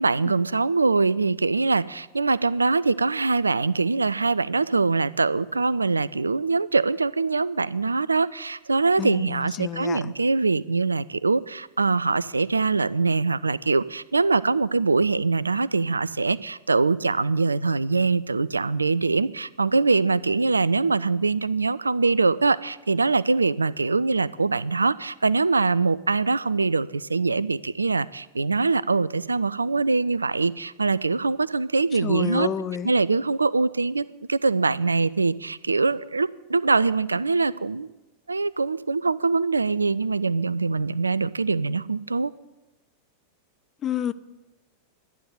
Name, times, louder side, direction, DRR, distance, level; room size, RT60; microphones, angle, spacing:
voice 1, 0.0-32.5 32.8-37.9 38.3-42.3, right 3 dB, 80° right, 19 dB, 0.3 m, -23 dB
voice 2, 9.0-10.1 32.0-32.9 43.8-44.1, left 9 dB, 30° left, 15 dB, 0.5 m, -29 dB
12.0 x 9.4 x 7.7 m, 1.1 s
figure-of-eight pair, 90°, 0 cm